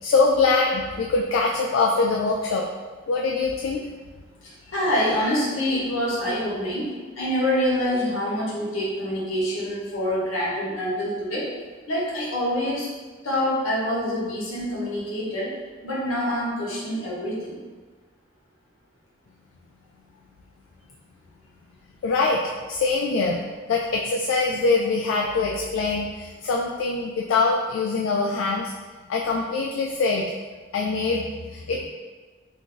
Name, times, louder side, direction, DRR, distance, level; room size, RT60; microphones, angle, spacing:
voice 1, 0.0-2.6 3.1-3.8 22.0-23.4 23.7-28.7 29.1-30.3 30.7-31.9, left 3 dB, 70° left, -1 dB, 0.3 m, -23 dB
voice 2, 4.4-11.5 11.9-12.9 13.2-15.5 15.8-17.6, equal, 85° left, -6 dB, 1.1 m, -26 dB
2.5 x 2.3 x 3.8 m, 1.4 s
head